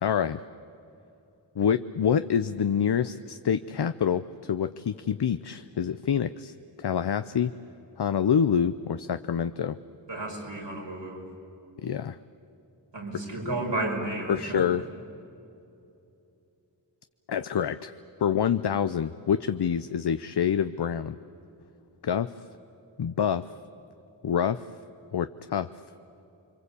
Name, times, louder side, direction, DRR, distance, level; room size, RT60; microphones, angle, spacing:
voice 1, 0.0-0.4 1.6-7.5 8.0-9.8 11.8-12.2 13.3-13.4 14.3-14.8 17.3-17.9 18.2-21.2 22.0-22.3 23.0-23.5 24.2-24.6 25.1-25.7, left 8 dB, 65° left, 11 dB, 0.6 m, -26 dB
voice 2, 10.1-11.3 12.9-14.8, right 2 dB, 80° right, -1 dB, 5.8 m, -32 dB
29.5 x 24.0 x 8.3 m, 2.8 s
wide cardioid pair, 65°, 43 cm